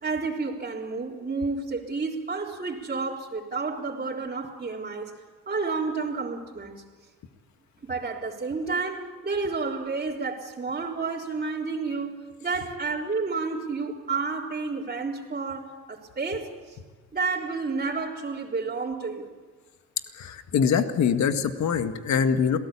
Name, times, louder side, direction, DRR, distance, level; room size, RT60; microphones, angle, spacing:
voice 1, 0.0-5.1 5.5-6.8 7.8-16.5 17.1-19.3, right 4 dB, 30° right, 3.8 m, -30 dB
voice 2, 20.2-22.6, left 7 dB, 70° left, 1.9 m, -24 dB
27.5 x 18.5 x 8.6 m
cardioid pair, 90°, 30 cm